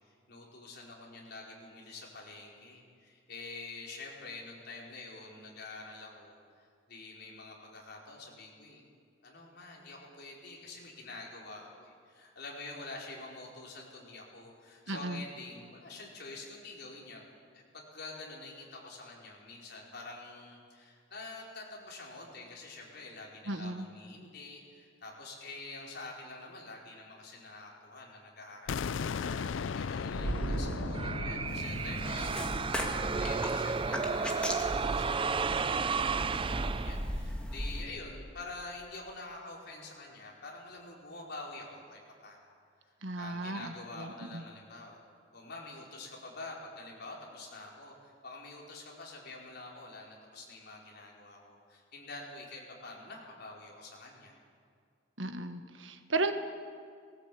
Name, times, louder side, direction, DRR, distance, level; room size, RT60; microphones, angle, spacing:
voice 1, 0.1-6.4 6.9-8.9 9.2-17.2 17.5-42.6 43.1-45.0 45.3-54.3, left 3 dB, 60° left, -2 dB, 4.7 m, -47 dB
voice 2, 14.9-15.2 23.5-23.9 43.0-44.4 55.2-56.3, right 2 dB, 90° right, 8 dB, 1.5 m, -35 dB
sound 1, 28.7-34.5, left 6 dB, 90° left, 0.4 m, -38 dB
sound 2, 30.1-37.3, right 4 dB, 30° right, 0.4 m, -32 dB
sound 3, 31.5-37.8, equal, 5° left, 2.2 m, -39 dB
19.0 x 17.5 x 8.6 m, 2.2 s
head